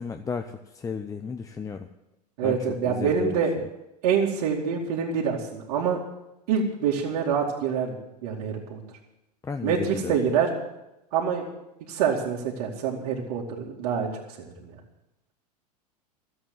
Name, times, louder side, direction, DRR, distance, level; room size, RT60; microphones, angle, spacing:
voice 1, 0.0-1.9 2.4-3.4 9.4-10.2, left 5 dB, 15° left, 7 dB, 0.7 m, -34 dB
voice 2, 2.4-3.5 4.0-6.0 6.5-8.0 8.2-8.8 9.6-10.5 11.1-11.4 11.9-14.7, right 7 dB, 60° right, -3 dB, 2.4 m, -26 dB
13.5 x 7.9 x 9.4 m, 0.91 s
hypercardioid pair, 90°, 21 cm